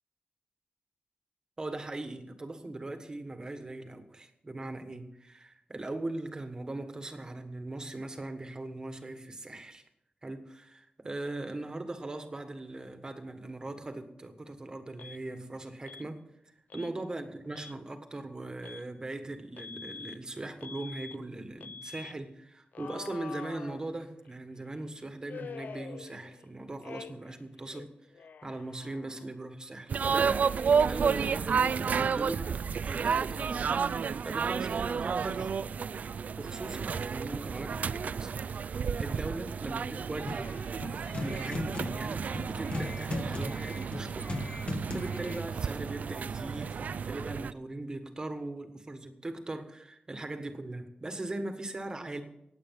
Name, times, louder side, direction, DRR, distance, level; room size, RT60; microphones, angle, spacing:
voice 1, 1.6-9.8 10.2-27.9 28.4-30.5 30.8-33.8 34.2-35.6 36.4-38.3 39.0-40.7 41.2-52.2, right 2 dB, 25° right, 8 dB, 1.4 m, -40 dB
Alarm, 15.0-15.2 15.9-16.1 16.7-16.9 17.4-17.8 18.6-18.9 19.6-20.2 20.6-21.2 21.6-22.1 22.7-24.3 25.3-26.5 26.8-27.4 27.6-29.3, left 6 dB, 70° left, 0.5 m, -46 dB
sound 1, 29.9-47.5, right 6 dB, 60° right, 0.4 m, -31 dB
sound 2, 40.3-45.5, left 2 dB, 40° left, 1.4 m, -38 dB
18.5 x 8.3 x 5.8 m, 0.80 s
wide cardioid pair, 150°, 3 cm